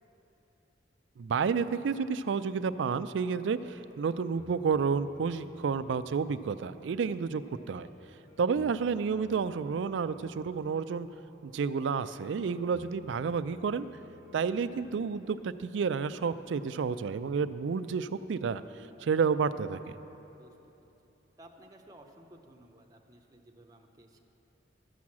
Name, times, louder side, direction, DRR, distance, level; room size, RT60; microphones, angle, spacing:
voice 1, 1.2-7.4 7.7-7.9 8.4-11.1 11.4-13.9 14.3-18.6 19.0-20.0, right 5 dB, 80° right, 13 dB, 0.4 m, -30 dB
sound 1, 2.3-19.0, left 2 dB, 50° left, 0.9 m, -57 dB
voice 2, 20.4-20.7 21.4-24.2, right 1 dB, 20° right, 1 dB, 0.6 m, -55 dB
12.5 x 6.2 x 7.2 m, 3.0 s
head